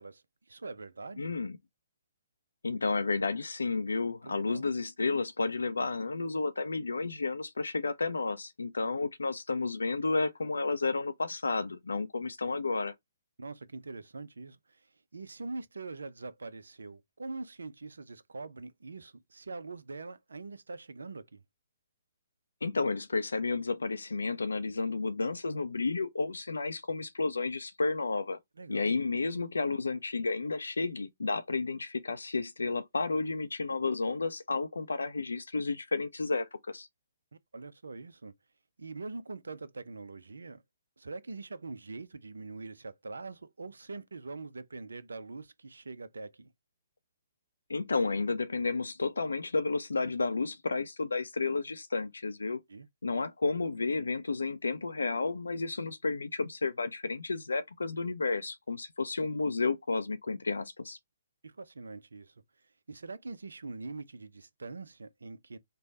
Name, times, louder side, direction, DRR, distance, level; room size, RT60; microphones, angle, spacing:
voice 1, 0.0-1.3 4.2-4.7 13.4-14.8 15.1-21.4 28.6-28.9 37.3-38.3 38.8-40.6 41.0-46.5 52.7-52.9 61.4-62.3 62.9-65.6, right 3 dB, 75° right, 0.5 m, -43 dB
voice 2, 1.2-1.6 2.6-12.9 22.6-28.4 28.7-36.9 47.7-52.6 53.0-61.0, left 3 dB, 80° left, 0.5 m, -32 dB
3.3 x 2.2 x 4.0 m
figure-of-eight pair, 135°, 0 cm